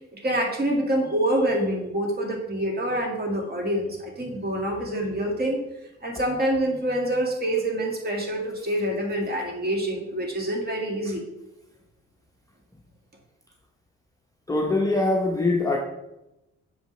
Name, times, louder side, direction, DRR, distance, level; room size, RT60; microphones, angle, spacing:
voice 1, 0.1-5.6 6.0-11.2, right 1 dB, 30° right, 0 dB, 2.0 m, -26 dB
voice 2, 14.5-15.8, left 2 dB, 10° left, -1 dB, 0.8 m, -22 dB
6.9 x 5.2 x 3.2 m, 0.91 s
cardioid pair, 90°, 30 cm